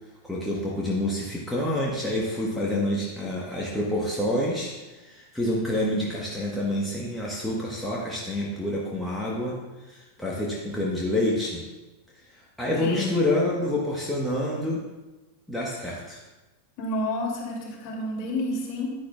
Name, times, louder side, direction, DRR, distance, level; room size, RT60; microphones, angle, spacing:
voice 1, 0.2-11.6 12.6-14.8 15.5-16.2, left 1 dB, 5° left, -5 dB, 1.3 m, -28 dB
voice 2, 12.8-13.1 16.8-19.0, left 1 dB, 40° left, -2 dB, 2.7 m, -30 dB
10.0 x 9.9 x 2.4 m, 1.2 s
figure-of-eight pair, 90°, 0 cm